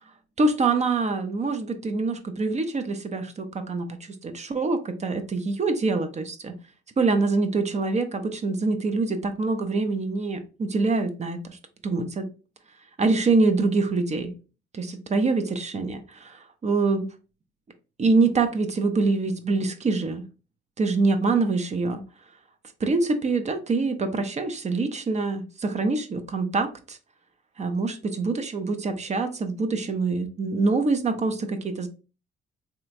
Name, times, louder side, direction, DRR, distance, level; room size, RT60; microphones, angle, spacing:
voice 1, 0.4-6.6 7.0-11.6 11.8-12.3 13.0-14.3 14.7-17.1 18.0-20.2 20.8-22.0 22.8-27.0 27.6-31.9, right 3 dB, 35° right, 0.6 m, -25 dB
3.3 x 2.9 x 2.5 m
cardioid pair, 90°, 20 cm